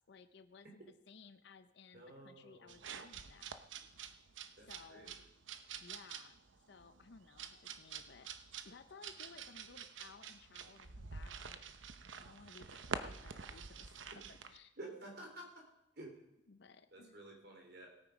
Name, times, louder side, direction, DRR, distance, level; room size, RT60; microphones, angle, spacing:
voice 1, 0.1-0.8 1.1-3.6 4.7-5.1 5.8-6.4 6.7-8.3 8.6-11.6 12.2-14.0 14.5-14.7 16.5-17.2, left 4 dB, 60° left, 10 dB, 0.6 m, -58 dB
voice 2, 1.9-2.8 4.6-5.3 14.8-15.6 15.9-16.2 16.9-17.9, right 1 dB, 60° right, 1 dB, 3.6 m, -52 dB
sound 1, 2.7-14.6, right 6 dB, 90° right, 0.9 m, -48 dB
18.0 x 8.8 x 5.2 m, 0.84 s
head